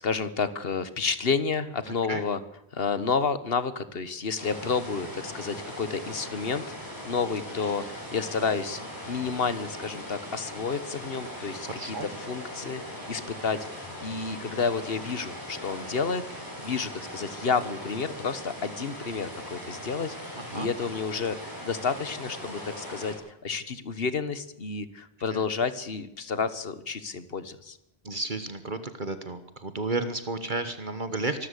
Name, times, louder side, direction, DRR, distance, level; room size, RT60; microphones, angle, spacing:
voice 1, 0.0-2.4 2.7-8.8 9.1-23.1 23.4-27.8, left 5 dB, 60° left, 14 dB, 1.5 m, -30 dB
voice 2, 1.9-2.2 11.6-12.1 20.3-20.7 25.3-25.5 28.0-31.5, right 3 dB, 50° right, 10 dB, 1.5 m, -33 dB
sound 1, 4.4-23.1, equal, 20° right, 8.0 m, -40 dB
24.5 x 13.5 x 8.3 m, 0.82 s
omnidirectional pair, 1.1 m